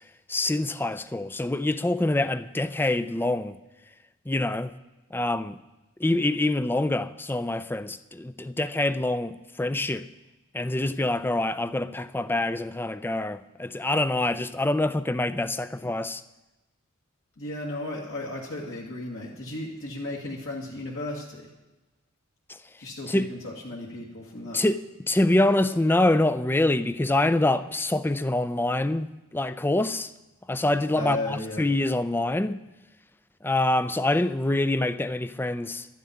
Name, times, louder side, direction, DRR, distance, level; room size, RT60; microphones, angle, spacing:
voice 1, 0.3-3.6 4.3-4.7 5.1-5.6 6.0-10.1 10.5-16.2 22.5-22.6 23.1-23.3 24.5-30.1 30.5-32.6 33.4-35.9, left 2 dB, 10° left, 0.4 m, -25 dB
voice 2, 17.4-21.5 22.8-24.6 30.9-31.7, left 2 dB, 70° left, 2.0 m, -35 dB
12.5 x 7.3 x 9.6 m
head